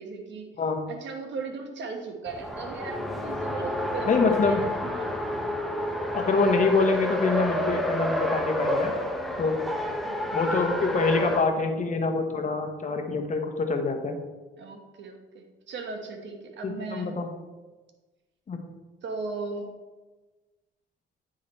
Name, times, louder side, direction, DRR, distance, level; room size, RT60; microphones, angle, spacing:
voice 1, 0.0-0.5 0.9-5.2 9.8-10.6 14.6-17.2 19.0-19.7, right 4 dB, 65° right, 4 dB, 1.3 m, -37 dB
Race car auto racing, 2.3-11.5, equal, ahead, 0.8 m, -29 dB
voice 2, 4.1-4.6 6.1-8.9 9.4-9.6 10.3-14.2 16.6-17.3 18.5-18.6, left 4 dB, 40° left, 4 dB, 1.0 m, -25 dB
9.3 x 3.8 x 4.3 m, 1.2 s
cardioid pair, 90°, 20 cm